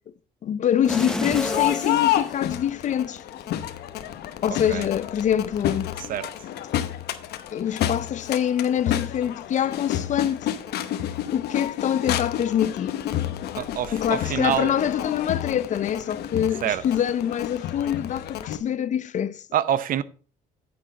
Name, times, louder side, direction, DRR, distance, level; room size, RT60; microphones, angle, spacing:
voice 1, 0.4-3.2 4.4-5.9 7.5-10.5 11.3-13.0 13.9-19.4, left 9 dB, 45° left, 0.6 m, -25 dB
Crowd, 0.8-18.6, left 12 dB, 70° left, 0.9 m, -30 dB
sound 1, 0.9-3.0 3.5-3.6, left 1 dB, 5° left, 0.7 m, -31 dB
voice 2, 13.6-14.8 16.6-16.8 19.5-20.0, right 10 dB, 55° right, 0.7 m, -26 dB
9.4 x 7.9 x 4.1 m
cardioid pair, 110°, 17 cm